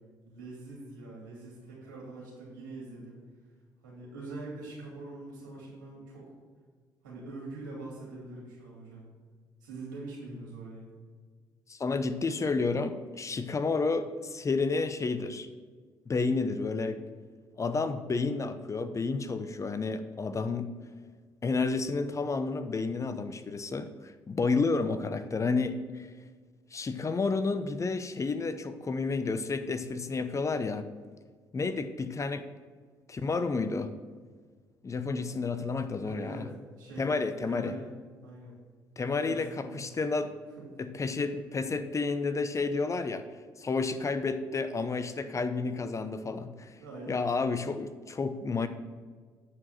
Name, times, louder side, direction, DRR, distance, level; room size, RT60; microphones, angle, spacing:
voice 1, 0.2-3.2 3.8-6.3 7.0-9.1 9.6-10.9 36.0-36.5 36.8-37.1 37.5-37.9 38.2-38.5 39.1-39.8 40.6-40.7 46.8-47.3, right 2 dB, 85° right, -4 dB, 2.8 m, -43 dB
voice 2, 11.7-15.5 16.1-17.0 17.6-20.7 21.4-26.1 26.7-30.9 31.5-32.4 33.1-33.9 34.8-36.4 37.0-37.7 39.0-40.3 40.8-43.2 43.6-46.8 47.1-48.7, left 4 dB, 30° left, 11 dB, 0.7 m, -31 dB
8.6 x 4.8 x 6.5 m, 1.5 s
hypercardioid pair, 50°, 10 cm